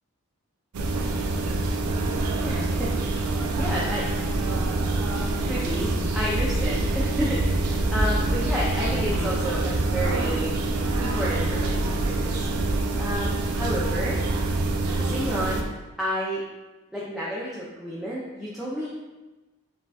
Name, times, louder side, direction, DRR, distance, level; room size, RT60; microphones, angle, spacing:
sound 1, 0.7-15.6, right 2 dB, 85° right, 0.5 m, -25 dB
voice 1, 2.4-4.1 5.4-10.6 11.0-14.2 14.8-15.6 16.0-16.4 16.9-18.9, equal, ahead, -8 dB, 0.5 m, -31 dB
4.8 x 3.7 x 2.4 m, 1.1 s
head